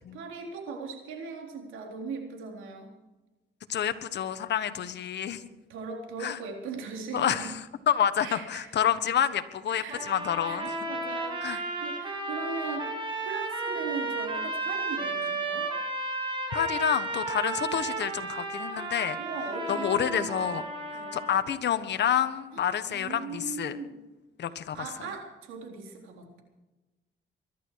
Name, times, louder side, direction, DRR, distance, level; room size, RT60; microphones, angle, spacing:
voice 1, 0.1-3.0 5.7-7.5 8.2-8.8 9.7-10.0 10.4-15.7 19.0-20.3 20.9-21.2 22.5-24.0 24.5-26.4, right 4 dB, 90° right, 2 dB, 3.7 m, -39 dB
voice 2, 3.7-5.5 6.2-6.4 7.1-7.6 7.9-10.7 11.4-11.6 16.5-19.2 19.7-20.6 21.1-23.8 24.4-24.8, left 9 dB, 60° left, 10 dB, 1.4 m, -28 dB
sound 1, 9.9-21.4, right 3 dB, 25° right, 5.7 m, -33 dB
23.0 x 12.0 x 4.8 m, 1.1 s
cardioid pair, 90°, 20 cm